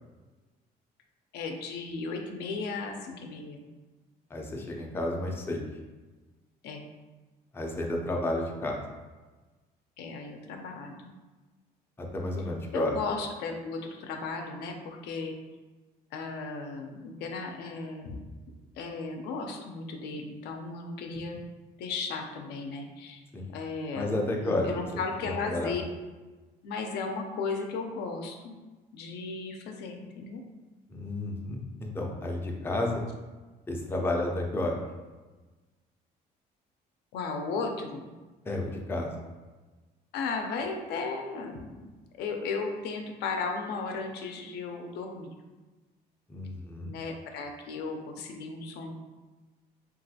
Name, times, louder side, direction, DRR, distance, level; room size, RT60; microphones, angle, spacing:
voice 1, 1.3-3.7 6.6-6.8 10.0-11.1 12.7-15.3 16.1-18.2 18.8-21.4 21.8-23.2 23.5-24.1 24.4-25.8 26.6-28.6 28.9-30.4 34.1-34.3 37.1-38.1 40.1-41.9 42.2-45.4 46.9-48.9, left 4 dB, 80° left, 3 dB, 0.4 m, -35 dB
voice 2, 4.3-5.6 7.5-8.8 12.0-12.9 23.3-23.5 24.0-24.7 25.2-25.7 30.9-33.0 33.7-34.8 38.5-39.1 46.3-46.9, left 2 dB, 15° left, 0 dB, 0.4 m, -31 dB
3.0 x 2.4 x 2.7 m, 1.2 s
cardioid pair, 110°, 17 cm